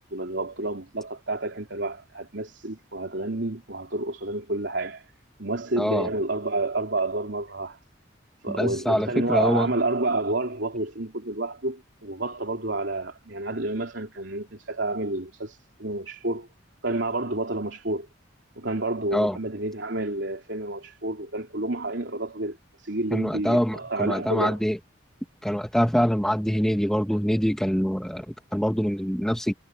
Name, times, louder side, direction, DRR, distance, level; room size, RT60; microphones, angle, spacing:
voice 1, 0.0-5.0 5.4-7.8 8.4-16.5 16.8-18.1 18.6-24.6, right 2 dB, 65° right, 3.4 m, -29 dB
voice 2, 5.8-6.1 8.6-9.7 19.1-19.4 23.1-24.8 25.4-29.5, equal, 5° left, 1.3 m, -24 dB
head